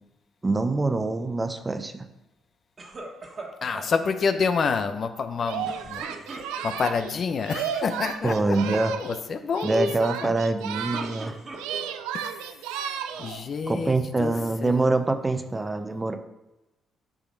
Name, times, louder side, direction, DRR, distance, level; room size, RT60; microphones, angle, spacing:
voice 1, 0.4-2.1 8.2-8.9 9.6-11.3 13.7-16.2, right 2 dB, 25° right, 8 dB, 0.8 m, -25 dB
sound 1, 2.8-3.9 5.6-6.9 7.6-8.0 8.3-8.7 10.5-12.1 12.6-13.4, right 2 dB, 40° right, 1.5 m, -41 dB
voice 2, 3.6-6.1 6.6-10.4 12.1-12.5 13.2-14.9, left 5 dB, 55° left, 9 dB, 0.7 m, -28 dB
Singing, 5.4-9.2 9.5-11.3 11.5-13.4, right 9 dB, 90° right, 0.4 m, -34 dB
8.7 x 5.0 x 3.9 m, 0.98 s
supercardioid pair, 60°, 0 cm